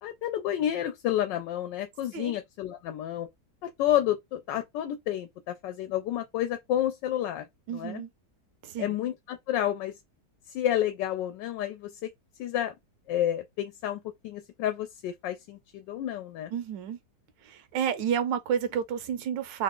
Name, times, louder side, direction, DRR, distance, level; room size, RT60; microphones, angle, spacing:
voice 1, 0.0-3.3 3.6-7.5 7.7-8.0 8.8-9.9 10.5-12.1 12.4-12.7 13.1-16.5, left 11 dB, 80° left, 1.2 m, -30 dB
voice 2, 7.7-8.1 8.6-9.0 16.5-17.0 17.5-19.6, right 8 dB, 90° right, 1.4 m, -30 dB
3.5 x 2.0 x 3.6 m
omnidirectional pair, 1.9 m